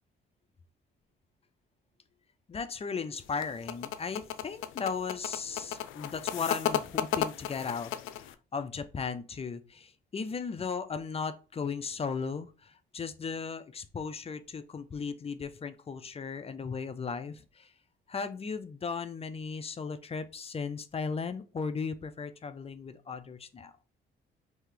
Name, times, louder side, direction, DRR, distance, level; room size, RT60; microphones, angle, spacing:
voice 1, 2.5-7.9 8.2-17.7 18.1-23.7, left 5 dB, 30° left, 10 dB, 0.5 m, -36 dB
sound 1, 3.2-8.3, left 11 dB, 85° left, 0.4 m, -34 dB
3.2 x 2.8 x 3.7 m, 0.35 s
cardioid pair, 90°, 20 cm